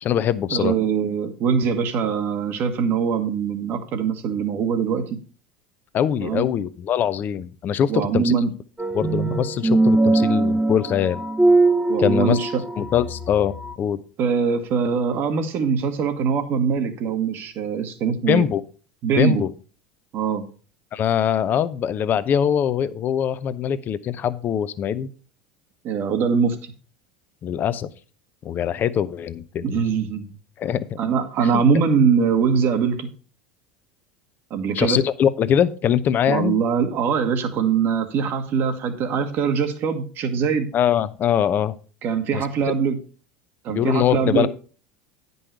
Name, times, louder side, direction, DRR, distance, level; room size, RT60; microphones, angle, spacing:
voice 1, 0.0-0.7 5.9-8.4 8.9-11.2 12.0-12.4 12.8-14.0 18.3-18.6 19.2-19.5 20.9-25.1 27.4-27.9 28.4-29.8 30.6-30.8 31.4-31.6 34.7-36.6 40.7-41.7 42.3-42.4 43.7-44.5, left 9 dB, 40° left, 15 dB, 0.7 m, -22 dB
voice 2, 0.5-5.0 6.2-6.5 7.9-8.5 11.9-12.6 14.2-18.4 19.0-19.4 20.1-20.4 25.8-26.7 29.6-30.3 31.0-33.1 34.5-35.0 36.3-40.7 42.0-43.0 43.6-44.5, right 6 dB, 50° right, 8 dB, 1.4 m, -22 dB
sound 1, 8.8-13.7, right 2 dB, 10° right, 0.8 m, -21 dB
9.9 x 5.5 x 4.6 m, 0.38 s
hypercardioid pair, 80°, 5 cm